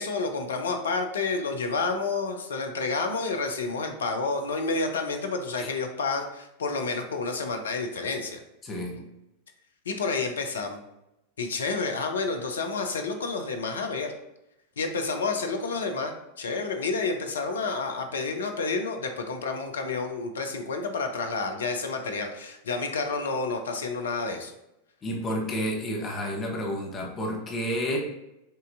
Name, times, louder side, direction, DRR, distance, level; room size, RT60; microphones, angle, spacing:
voice 1, 0.0-8.4 8.9-9.0 9.9-10.8 11.4-14.1 14.8-24.5, left 3 dB, 65° left, 5 dB, 0.5 m, -30 dB
voice 2, 8.6-8.9 25.0-28.0, equal, 25° left, -1 dB, 1.0 m, -30 dB
5.5 x 2.6 x 2.5 m, 0.89 s
figure-of-eight pair, 90°, 0 cm